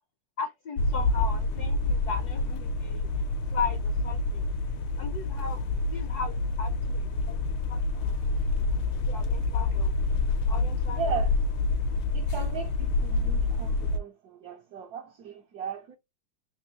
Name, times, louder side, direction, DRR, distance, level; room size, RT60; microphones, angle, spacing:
voice 1, 0.4-3.1 3.5-4.4 5.0-5.7 5.9-8.2 9.1-9.9 10.5-11.0, left 5 dB, 65° left, 1.0 m, -37 dB
sound 1, 0.8-14.0, left 3 dB, 85° left, 1.5 m, -27 dB
voice 2, 10.9-11.4 12.1-16.0, right 6 dB, 70° right, 0.9 m, -36 dB
3.5 x 3.0 x 2.7 m
omnidirectional pair, 2.3 m